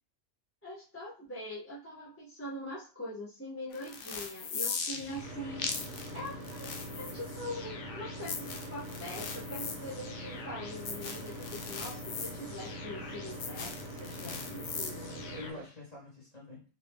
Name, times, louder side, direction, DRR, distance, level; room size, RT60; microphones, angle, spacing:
voice 1, 0.6-5.7 6.1-15.4, left 1 dB, 15° left, -7 dB, 0.7 m, -43 dB
sound 1, 3.7-15.5, left 5 dB, 90° left, 0.9 m, -41 dB
voice 2, 4.9-5.3 6.1-6.3 14.2-14.7 15.3-16.6, left 3 dB, 35° left, -4 dB, 1.5 m, -47 dB
sound 2, 5.0-15.7, right 1 dB, 35° right, 0.9 m, -43 dB
2.9 x 2.7 x 3.4 m, 0.38 s
omnidirectional pair, 1.2 m